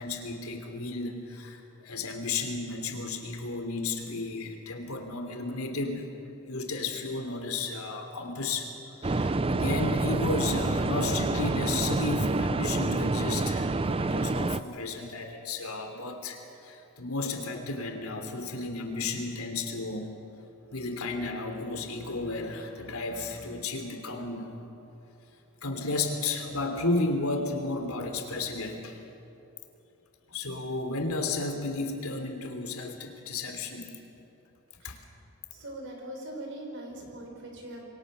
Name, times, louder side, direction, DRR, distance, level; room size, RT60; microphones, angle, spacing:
voice 1, 0.0-6.1 6.5-20.1 20.7-24.7 25.6-29.0 30.3-33.9 34.8-35.0, left 3 dB, 90° left, 4 dB, 3.3 m, -33 dB
sound 1, 9.0-14.6, right 2 dB, 25° right, 0.5 m, -27 dB
voice 2, 35.5-37.9, right 1 dB, 60° right, 1 dB, 5.5 m, -41 dB
28.0 x 22.5 x 6.9 m, 3.0 s
head